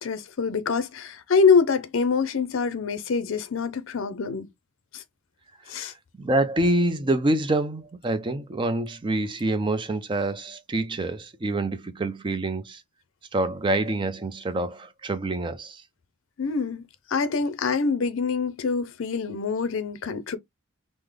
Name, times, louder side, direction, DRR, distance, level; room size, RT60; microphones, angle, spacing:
voice 1, 0.0-4.5 4.9-5.0 5.7-5.9 16.4-16.8 17.1-20.4, left 5 dB, 65° left, 0.5 m, -25 dB
voice 2, 6.2-12.8 13.3-15.8, right 2 dB, 20° right, 0.4 m, -26 dB
3.6 x 2.0 x 3.2 m
head